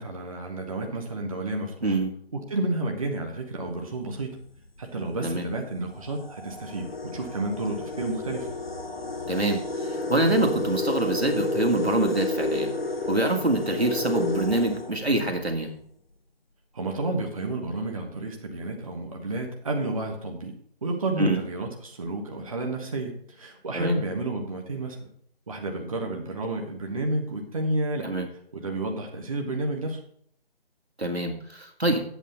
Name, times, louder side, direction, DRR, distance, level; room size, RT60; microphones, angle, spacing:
voice 1, 0.0-2.0 2.3-4.4 4.8-8.5 16.7-20.5 20.8-25.0 25.5-28.1 28.5-30.0, right 2 dB, 35° right, 1 dB, 1.2 m, -31 dB
sound 1, 4.2-4.5 5.3-5.4 5.8-15.6, left 2 dB, 65° left, 1.4 m, -31 dB
voice 2, 9.3-12.7 13.1-15.7 21.2-21.4 23.7-24.0 28.0-28.3 31.0-32.0, right 2 dB, 85° right, 3 dB, 2.0 m, -25 dB
8.8 x 8.2 x 4.0 m, 0.64 s
figure-of-eight pair, 155°, 31 cm